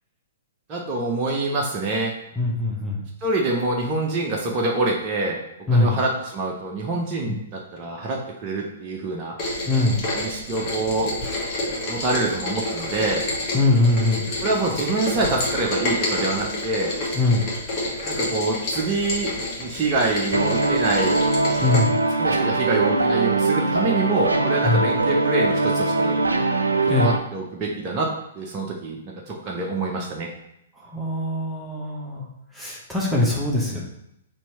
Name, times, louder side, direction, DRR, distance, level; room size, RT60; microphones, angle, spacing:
voice 1, 0.7-2.1 3.2-5.4 5.7-9.3 10.1-11.1 11.9-13.2 14.4-16.9 18.0-19.3 19.6-21.2 22.2-26.2 26.8-28.1 28.4-29.0 29.3-30.3, right 2 dB, 30° right, -2 dB, 0.7 m, -25 dB
voice 2, 2.4-3.0 5.7-6.0 9.7-10.0 13.5-14.2 17.1-17.4 21.6-22.0 24.6-24.8 26.9-27.1 30.9-32.3 32.5-33.8, left 2 dB, 5° right, -4 dB, 0.9 m, -21 dB
Rain, 9.4-21.8, left 1 dB, 35° left, 1.3 m, -29 dB
sound 1, 20.3-27.2, right 3 dB, 80° right, 0.4 m, -22 dB
4.4 x 2.7 x 4.3 m, 0.80 s
figure-of-eight pair, 115°, 0 cm